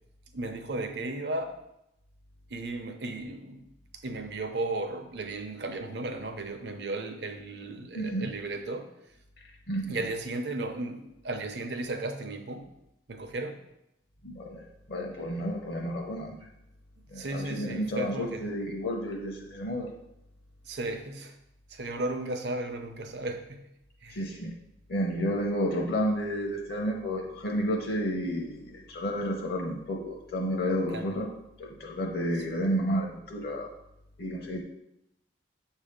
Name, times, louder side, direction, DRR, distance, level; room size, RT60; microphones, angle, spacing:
voice 1, 0.3-1.6 2.5-3.7 3.9-8.9 9.9-12.7 13.1-13.6 17.1-18.5 20.7-21.4 21.7-23.6 24.0-24.3 30.9-31.2, right 2 dB, 65° right, 6 dB, 0.7 m, -35 dB
voice 2, 7.9-8.3 9.7-10.0 14.2-16.4 17.1-19.9 24.1-24.5 24.9-31.3 31.6-33.7 34.2-34.6, equal, 60° left, 1 dB, 0.7 m, -31 dB
7.1 x 2.8 x 5.1 m, 0.84 s
head